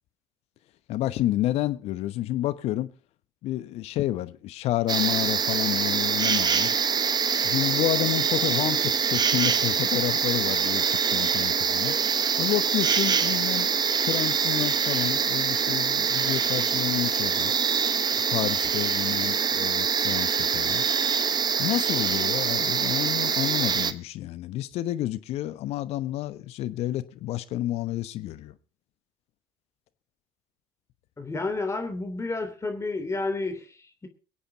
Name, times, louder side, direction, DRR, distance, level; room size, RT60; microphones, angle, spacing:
voice 1, 0.9-2.9 3.4-6.7 7.4-12.0 12.4-13.8 14.0-17.5 18.1-20.8 21.6-28.5, left 14 dB, 60° left, 1.0 m, -30 dB
sound 1, 4.9-23.9, right 6 dB, 35° right, 1.1 m, -24 dB
voice 2, 31.2-34.1, left 3 dB, 25° left, 3.2 m, -31 dB
23.0 x 8.6 x 4.1 m
hypercardioid pair, 60°, 12 cm